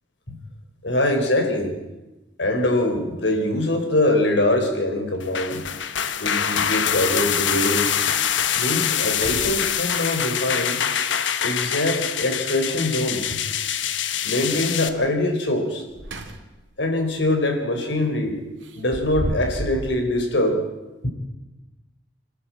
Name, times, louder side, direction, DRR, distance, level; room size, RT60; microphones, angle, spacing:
voice 1, 0.8-1.7 2.4-5.6 6.2-8.0 8.5-10.8 11.4-13.4 14.2-15.8 16.8-18.4 18.7-20.6 21.0-21.1, left 1 dB, 75° left, 4 dB, 4.3 m, -23 dB
sound 1, 3.3-3.4 5.1-5.2 5.6-5.7 6.0-6.6 7.1-7.2 7.8-7.9 8.3-8.6 9.1-10.1 12.2-12.9 15.7-16.7 17.1-17.3 18.6-19.9, right 1 dB, 90° right, 2.7 m, -34 dB
sound 2, 5.2-14.9, left 8 dB, 90° left, 1.2 m, -24 dB
26.5 x 13.0 x 8.7 m, 1.1 s
head